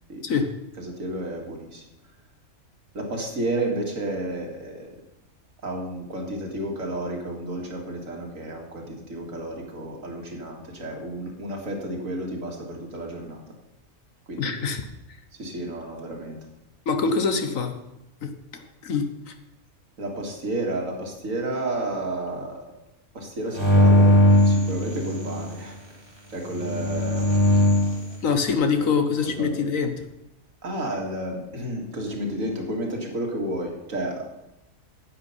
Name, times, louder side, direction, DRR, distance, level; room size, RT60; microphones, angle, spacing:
voice 1, 0.8-1.8 2.9-4.9 5.6-13.4 14.3-14.7 15.3-16.4 20.0-22.6 23.1-25.8 26.3-27.3 28.8-28.9 29.2-29.6 30.6-34.3, right 1 dB, 65° right, 1 dB, 2.4 m, -31 dB
voice 2, 14.4-14.8 16.9-17.7 18.2-18.3 18.8-19.3 28.2-30.0, left 5 dB, 70° left, 7 dB, 1.5 m, -24 dB
sound 1, 23.5-25.5 26.5-28.0, left 1 dB, 20° right, 2.1 m, -19 dB
9.8 x 8.9 x 5.5 m, 0.93 s
omnidirectional pair, 1.5 m